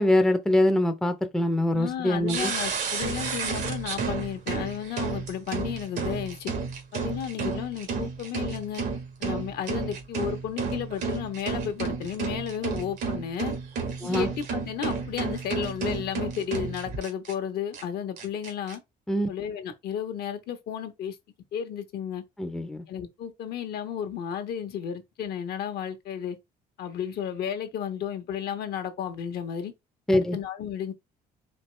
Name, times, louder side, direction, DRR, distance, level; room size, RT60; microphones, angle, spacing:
voice 1, 0.0-2.5 14.0-14.3 19.1-19.3 22.4-22.8 30.1-30.4, left 1 dB, 5° left, 0.5 m, -23 dB
voice 2, 1.7-6.5 6.9-8.8 9.2-13.5 14.0-18.8 19.3-21.2 21.5-22.2 22.9-26.4 26.8-29.7 30.1-30.9, left 9 dB, 70° left, 1.0 m, -33 dB
sound 1, 2.3-17.3 17.7-17.8 18.2-18.7, right 5 dB, 80° right, 1.6 m, -32 dB
4.4 x 3.0 x 3.2 m
cardioid pair, 110°, 17 cm